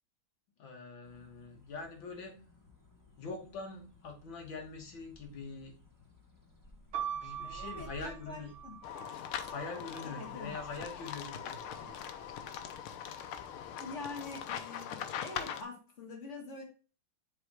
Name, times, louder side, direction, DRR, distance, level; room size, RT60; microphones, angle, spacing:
voice 1, 0.6-2.4 3.2-5.8 7.1-8.5 9.5-11.9, left 3 dB, 65° left, 3 dB, 2.2 m, -44 dB
sound 1, 1.0-14.6, left 3 dB, 10° left, 1.2 m, -59 dB
sound 2, 6.9-10.8 11.6-12.3, right 9 dB, 75° right, 1.7 m, -44 dB
voice 2, 7.4-8.8 10.0-10.5 13.8-16.6, left 3 dB, 35° left, 0 dB, 2.2 m, -45 dB
sound 3, 8.8-15.6, left 9 dB, 85° left, 1.6 m, -41 dB
6.9 x 3.6 x 6.3 m, 0.35 s
omnidirectional pair, 2.3 m